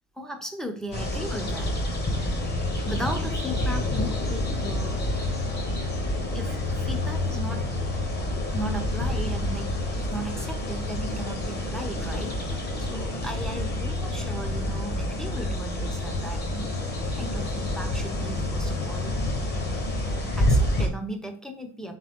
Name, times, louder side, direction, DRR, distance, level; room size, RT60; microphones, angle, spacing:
voice 1, 0.2-1.7 2.9-5.0 6.3-7.8 8.5-19.2 20.4-22.0, right 1 dB, ahead, 3 dB, 0.6 m, -36 dB
sound 1, 0.9-20.9, left 1 dB, 25° left, 1.0 m, -28 dB
3.6 x 3.3 x 3.6 m, 0.42 s
cardioid pair, 120°, 38 cm